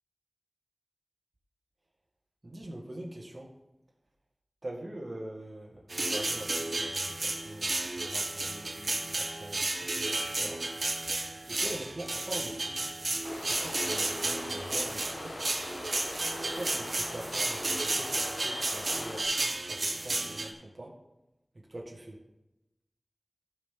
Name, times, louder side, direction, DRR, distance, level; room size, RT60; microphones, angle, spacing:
voice 1, 2.4-3.5 4.6-10.6 11.5-13.0 13.5-15.4 16.4-21.0 21.7-22.2, right 1 dB, 55° right, -2 dB, 1.7 m, -43 dB
sound 1, 5.9-20.5, right 2 dB, 80° right, 1.2 m, -32 dB
sound 2, 13.2-19.2, left 1 dB, 70° left, 1.3 m, -41 dB
15.5 x 6.3 x 3.7 m, 0.95 s
wide cardioid pair, 40°, 0 cm